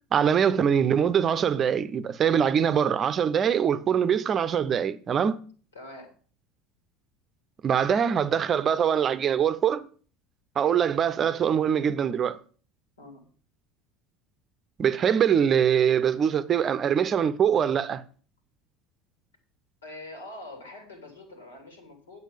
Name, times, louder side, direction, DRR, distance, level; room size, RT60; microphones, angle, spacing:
voice 1, 0.1-5.4 7.6-9.9 10.6-12.4 14.8-18.0, right 8 dB, 35° right, 0.6 m, -23 dB
voice 2, 5.7-6.1 13.0-13.2 19.8-22.2, left 1 dB, 80° left, 3.0 m, -44 dB
9.2 x 8.1 x 5.1 m
figure-of-eight pair, 70°, 0 cm